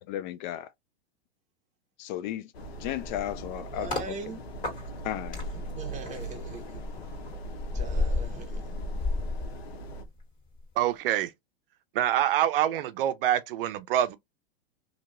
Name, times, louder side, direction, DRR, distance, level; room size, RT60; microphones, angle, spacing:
voice 1, 0.1-0.7 2.0-2.5 2.8-4.1 5.0-5.4, left 12 dB, 50° left, 0.5 m, -34 dB
sound 1, 2.5-10.0, right 2 dB, 90° left, 0.9 m, -41 dB
sound 2, 2.8-4.1 4.6-10.2 10.5-10.8, left 2 dB, 25° left, 2.1 m, -33 dB
voice 2, 3.6-4.4 5.5-6.8 7.7-8.6, right 3 dB, 25° right, 1.0 m, -41 dB
voice 3, 10.8-11.3 11.9-14.2, right 11 dB, 65° right, 0.5 m, -25 dB
2.9 x 2.9 x 2.5 m
hypercardioid pair, 120°, 30 cm